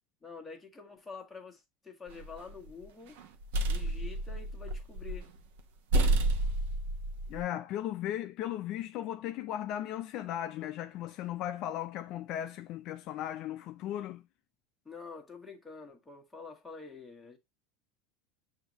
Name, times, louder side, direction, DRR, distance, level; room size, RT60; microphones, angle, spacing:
voice 1, 0.2-3.2 3.7-5.3 14.8-17.4, left 4 dB, 10° left, 1.2 m, -47 dB
sound 1, 2.1-2.7 3.2-5.3 5.6-5.7 5.9-7.4, right 1 dB, 85° right, 0.8 m, -30 dB
voice 2, 7.3-14.2, left 12 dB, 50° left, 0.4 m, -36 dB
6.4 x 2.7 x 2.9 m
supercardioid pair, 140°, 0 cm